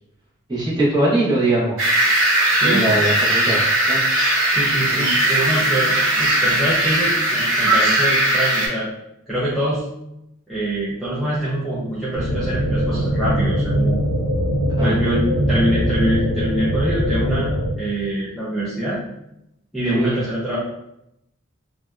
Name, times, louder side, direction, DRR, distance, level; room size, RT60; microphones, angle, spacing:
voice 1, 0.5-1.8 2.6-3.6 3.9-4.0 4.9-5.1 14.8-15.0 19.9-20.2, right 2 dB, 20° right, -8 dB, 0.8 m, -21 dB
sound 1, 1.8-8.7, right 1 dB, 75° right, 0.7 m, -18 dB
voice 2, 2.5-2.8 4.5-8.9 9.3-9.8 10.5-14.0 14.8-19.0 19.7-20.6, right 1 dB, ahead, -11 dB, 0.4 m, -24 dB
sound 2, 12.1-17.7, equal, 90° left, 0.6 m, -21 dB
2.6 x 2.1 x 2.2 m, 0.83 s
head